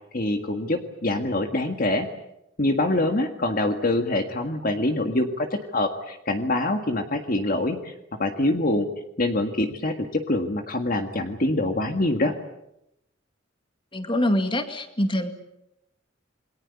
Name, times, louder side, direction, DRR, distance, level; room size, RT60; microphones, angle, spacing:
voice 1, 0.1-2.1 2.6-7.9 8.2-8.9 9.2-12.3, left 2 dB, 45° left, 5 dB, 1.9 m, -25 dB
voice 2, 13.9-15.3, left 1 dB, 25° left, 7 dB, 2.3 m, -24 dB
28.0 x 22.0 x 8.4 m, 0.85 s
head